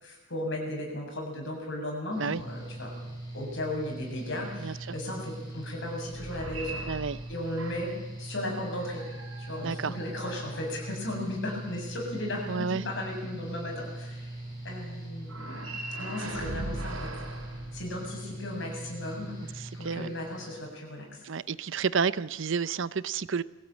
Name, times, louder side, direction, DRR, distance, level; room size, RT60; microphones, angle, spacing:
voice 1, 0.0-2.9 3.3-6.8 7.3-7.9 8.2-9.0 9.4-14.3 14.6-15.7 16.0-17.1 17.7-19.3 19.7-21.1, left 1 dB, 60° left, 0 dB, 7.4 m, -36 dB
Mechanical fan, 2.1-20.6, right 1 dB, 20° left, 6.4 m, -41 dB
voice 2, 4.6-4.9 6.9-7.2 9.6-10.0 12.5-12.8 19.6-20.1 21.2-23.4, right 5 dB, 65° right, 17 dB, 0.6 m, -30 dB
sound 1, 6.1-8.1 8.7-11.1 15.2-18.4, right 2 dB, 90° right, 4.6 m, -40 dB
22.0 x 16.5 x 8.9 m, 1.1 s
head